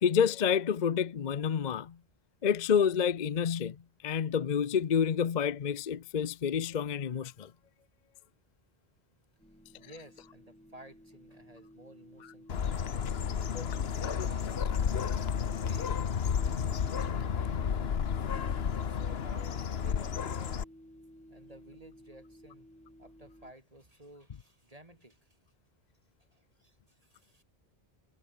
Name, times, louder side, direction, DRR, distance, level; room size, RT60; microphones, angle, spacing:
voice 1, 0.0-1.9 2.4-3.8 4.0-7.5 13.5-13.7, left 7 dB, 50° left, 0.8 m, -28 dB
sound 1, 9.4-23.5, equal, 5° left, 7.7 m, -53 dB
voice 2, 9.8-13.3 13.8-16.0 16.4-18.0 18.7-20.6 21.3-22.7 23.0-25.4 26.3-27.4, right 1 dB, 35° right, 6.0 m, -54 dB
Bird, 12.5-20.6, left 7 dB, 70° left, 1.3 m, -32 dB
omnidirectional pair, 1.1 m